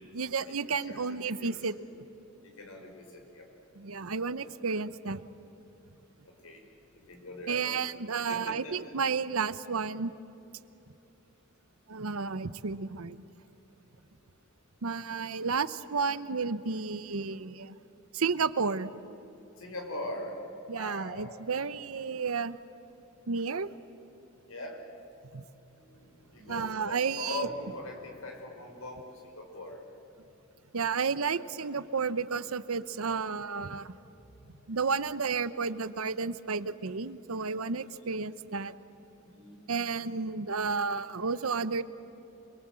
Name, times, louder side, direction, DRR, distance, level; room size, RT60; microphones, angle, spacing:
voice 1, 0.1-1.8 3.7-5.2 7.5-10.1 11.9-13.2 14.8-17.7 18.1-18.9 20.7-22.6 23.3-23.7 25.3-25.4 26.5-27.5 30.7-33.9 34.7-38.7 39.7-41.8, right 5 dB, 85° right, 15 dB, 0.8 m, -32 dB
voice 2, 1.2-1.6 2.6-3.5 6.2-6.6 6.9-7.8 8.3-8.7 19.6-20.4 20.7-21.4 24.4-24.8 25.7-29.8 34.4-34.5 38.1-38.2 39.2-39.6, left 2 dB, 85° left, 3 dB, 5.0 m, -41 dB
27.5 x 22.0 x 7.7 m, 3.0 s
head